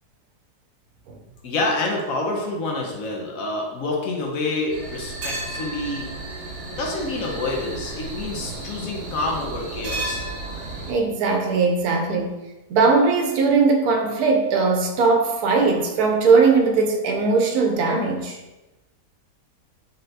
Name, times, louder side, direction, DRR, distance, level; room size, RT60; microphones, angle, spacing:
voice 1, 1.4-6.1 6.8-10.2, left 2 dB, 65° left, 0 dB, 1.0 m, -27 dB
sound 1, 4.7-10.9, right 2 dB, 50° right, 1.0 m, -33 dB
voice 2, 10.9-12.4 12.7-18.4, right 4 dB, 75° right, 2 dB, 1.1 m, -19 dB
4.1 x 3.3 x 2.7 m, 1.1 s
omnidirectional pair, 1.7 m